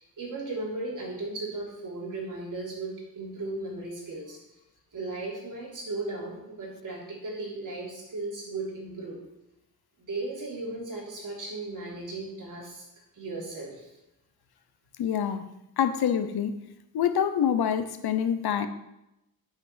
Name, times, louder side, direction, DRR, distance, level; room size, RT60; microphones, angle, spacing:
voice 1, 0.0-4.4 4.9-9.2 10.0-12.8 13.1-13.9, right 2 dB, 55° right, -4 dB, 3.5 m, -36 dB
voice 2, 15.0-15.4 15.8-16.5 16.9-18.7, left 8 dB, 85° left, 10 dB, 0.9 m, -26 dB
8.6 x 5.0 x 7.5 m, 0.88 s
wide cardioid pair, 150°, 37 cm